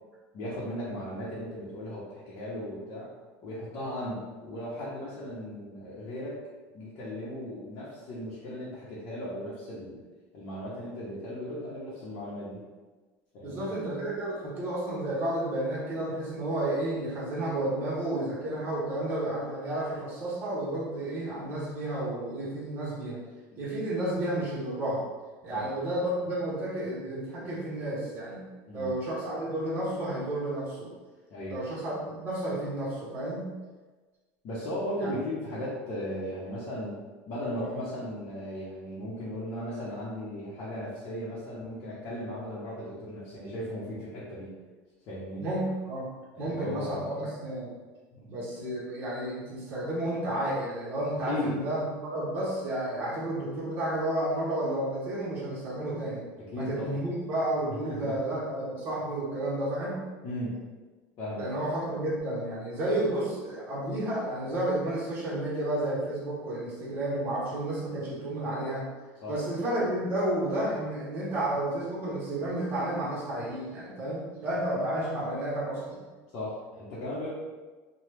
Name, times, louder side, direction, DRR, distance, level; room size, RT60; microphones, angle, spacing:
voice 1, 0.3-3.1 3.4-6.4 6.7-10.0 10.3-12.6 13.3-13.7 23.5-23.6 25.5-25.7 28.7-28.9 31.3-31.6 34.4-37.0 37.3-44.5 45.1-45.5 46.3-47.3 48.1-48.3 51.2-51.6 56.4-57.0 57.8-58.1 60.2-60.5 61.2-61.5 69.2-69.3 76.3-77.3, left 1 dB, 45° left, -8 dB, 0.8 m, -36 dB
voice 2, 13.4-23.2 23.6-25.0 25.4-28.4 28.7-30.9 31.5-33.5 35.0-35.1 45.4-46.1 46.4-47.7 48.3-56.2 56.6-60.0 61.4-68.8 69.3-76.0, right 1 dB, 30° right, -8 dB, 1.0 m, -31 dB
2.9 x 2.2 x 3.3 m, 1.3 s
cardioid pair, 160°, 7 cm